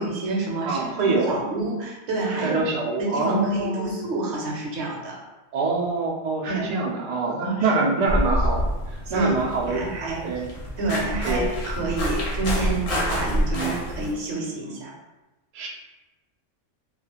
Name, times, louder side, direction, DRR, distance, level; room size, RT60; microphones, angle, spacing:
voice 1, 0.0-2.6 3.0-5.2 6.5-6.7 7.4-7.7 9.1-9.3 9.7-10.3 10.8-14.9, right 3 dB, 70° right, -2 dB, 0.8 m, -28 dB
voice 2, 0.6-1.5 2.4-4.0 5.5-9.8 10.2-10.5 11.2-11.6 13.5-13.8 14.7-14.8 15.5-15.7, right 3 dB, 85° right, -2 dB, 0.3 m, -25 dB
sound 1, 8.1-14.1, equal, 65° left, 0.8 m, -27 dB
2.3 x 2.3 x 2.8 m, 1.1 s
omnidirectional pair, 1.3 m